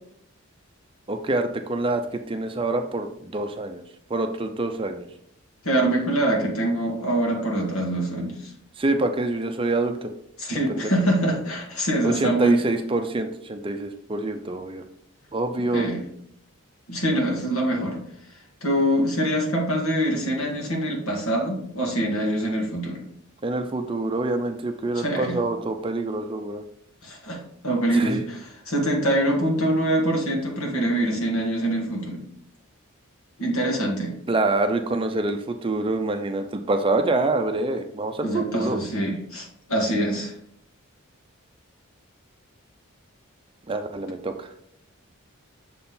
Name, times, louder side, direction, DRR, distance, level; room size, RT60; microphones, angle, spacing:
voice 1, 1.1-3.8 4.1-5.1 8.8-10.1 10.7-10.9 12.0-14.8 15.3-15.9 23.4-26.7 27.9-28.2 34.3-38.8 43.7-44.5, right 2 dB, 25° right, 6 dB, 0.5 m, -26 dB
voice 2, 5.6-8.5 10.4-12.6 15.7-16.0 16.9-18.0 18.6-23.0 24.9-25.4 27.0-32.2 33.4-34.1 38.2-40.3, right 1 dB, 80° left, 0 dB, 2.0 m, -24 dB
6.7 x 4.2 x 3.7 m, 0.71 s
head